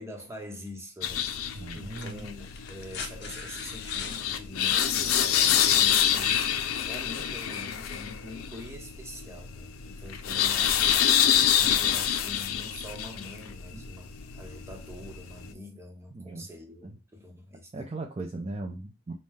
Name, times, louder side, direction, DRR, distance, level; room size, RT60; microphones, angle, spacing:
voice 1, 0.0-10.8 11.6-17.8, left 1 dB, 15° right, 0.9 m, -44 dB
sound 1, 0.7-0.8 1.8-4.2 5.8-5.9, left 5 dB, 55° left, 0.9 m, -41 dB
sound 2, 1.0-15.5, left 10 dB, 90° left, 0.5 m, -27 dB
voice 2, 1.5-2.3 13.7-13.9 16.1-16.5 16.8-17.0 17.7-19.1, right 2 dB, 30° right, 0.5 m, -38 dB
5.3 x 2.2 x 3.2 m
head